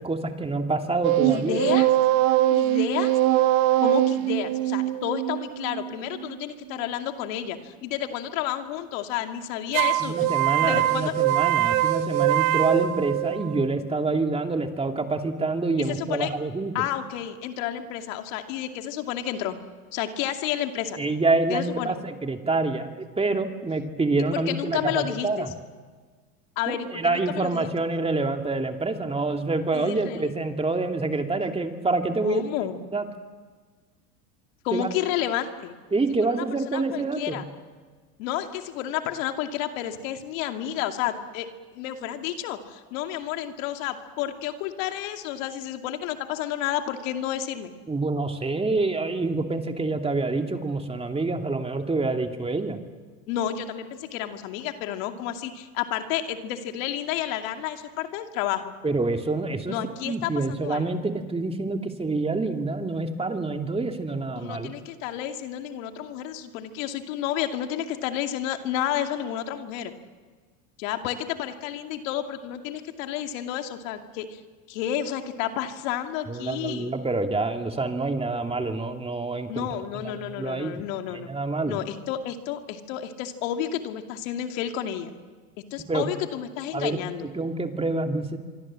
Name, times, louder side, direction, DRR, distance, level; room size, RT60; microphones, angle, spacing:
voice 1, 0.0-1.6 10.0-16.7 21.0-25.5 26.7-32.4 32.9-33.1 34.7-34.9 35.9-37.4 47.9-52.8 58.8-59.8 60.1-64.7 76.3-79.7 79.9-80.8 81.1-81.8 85.9-86.0 86.7-88.4, right 3 dB, 15° right, 4 dB, 2.6 m, -27 dB
sound 1, 1.0-6.4 9.7-13.7, right 14 dB, 70° right, 1.5 m, -23 dB
voice 2, 1.2-1.9 2.5-3.4 3.8-10.3 10.6-11.1 15.9-16.3 16.7-19.6 19.9-21.0 21.5-22.0 24.3-25.5 26.6-27.7 29.7-30.3 32.2-32.8 34.6-35.8 36.3-37.5 38.2-41.5 41.7-47.7 53.3-58.7 59.7-60.9 64.4-69.9 70.8-74.4 74.7-77.0 79.5-81.3 81.7-85.1 85.7-87.3, left 11 dB, 70° left, 5 dB, 2.5 m, -31 dB
25.5 x 24.5 x 7.6 m, 1.5 s
supercardioid pair, 105°, 41 cm